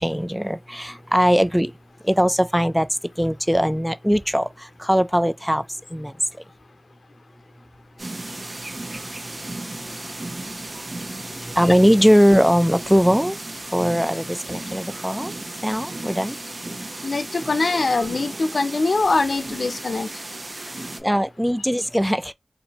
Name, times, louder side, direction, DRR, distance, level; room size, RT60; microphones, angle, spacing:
voice 1, 0.0-1.7 2.0-5.6 5.9-6.1 11.4-13.4 13.7-15.3 15.6-16.4 21.0-22.3, equal, ahead, 0.4 m, -20 dB
sound 1, 8.0-21.0, right 2 dB, 55° right, 1.0 m, -35 dB
voice 2, 17.0-20.1, left 3 dB, 75° left, 0.6 m, -22 dB
2.7 x 2.6 x 4.1 m
wide cardioid pair, 50°, 0 cm